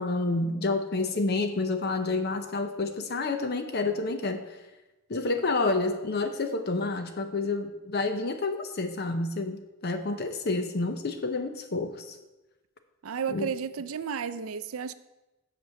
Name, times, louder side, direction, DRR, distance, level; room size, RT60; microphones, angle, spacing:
voice 1, 0.0-4.4 5.1-12.2 13.3-13.5, left 3 dB, 45° left, 8 dB, 0.7 m, -29 dB
voice 2, 13.0-14.9, right 7 dB, 70° right, 14 dB, 0.5 m, -32 dB
8.0 x 6.0 x 6.8 m, 1.0 s
head